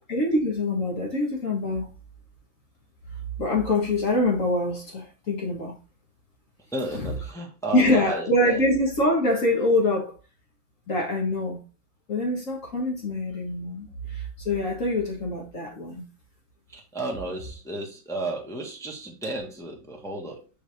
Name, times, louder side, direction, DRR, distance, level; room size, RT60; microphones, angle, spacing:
voice 1, 0.1-1.9 3.4-5.7 6.9-7.1 7.7-10.2 10.9-11.6 12.1-16.0, left 1 dB, 45° left, 1.7 m, -25 dB
voice 2, 6.7-8.7 16.7-20.5, right 2 dB, ahead, 1.2 m, -33 dB
5.7 x 5.0 x 3.4 m
omnidirectional pair, 2.2 m